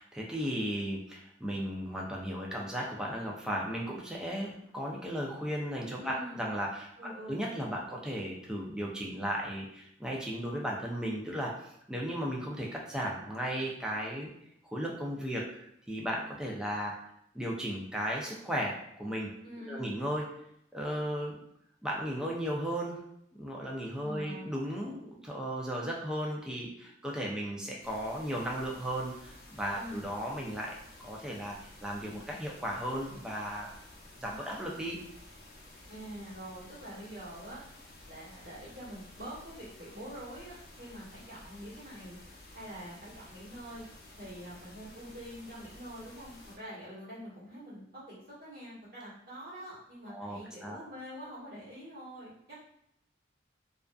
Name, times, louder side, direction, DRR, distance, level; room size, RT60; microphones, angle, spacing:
voice 1, 0.0-14.3 14.7-17.0 17.3-19.3 19.6-20.3 20.7-21.4 21.8-23.0 23.3-33.7 34.2-35.0 50.1-50.8, equal, 5° right, -2 dB, 0.4 m, -35 dB
voice 2, 6.0-6.4 7.0-7.4 19.4-19.9 24.0-24.5 29.7-30.1 35.9-37.6 38.0-42.2 42.5-43.8 44.2-52.6, equal, 55° right, -9 dB, 1.2 m, -45 dB
sound 1, 27.8-46.6, left 1 dB, 55° left, 0.6 m, -53 dB
2.4 x 2.4 x 2.2 m, 0.75 s
head